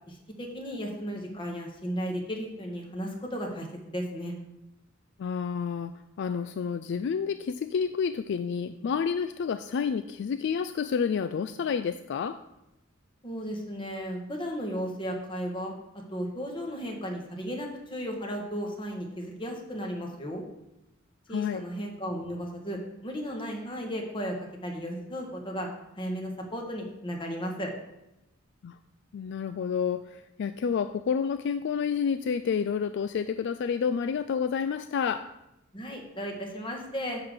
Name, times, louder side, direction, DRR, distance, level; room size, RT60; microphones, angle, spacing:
voice 1, 0.1-4.3 13.2-15.7 16.1-20.4 21.3-25.7 25.9-27.7 35.7-37.2, equal, 25° left, 1 dB, 1.6 m, -35 dB
voice 2, 5.2-12.4 21.3-21.6 28.6-28.8 29.1-35.3, left 6 dB, 60° left, 11 dB, 0.3 m, -29 dB
10.5 x 3.8 x 6.5 m, 0.90 s
head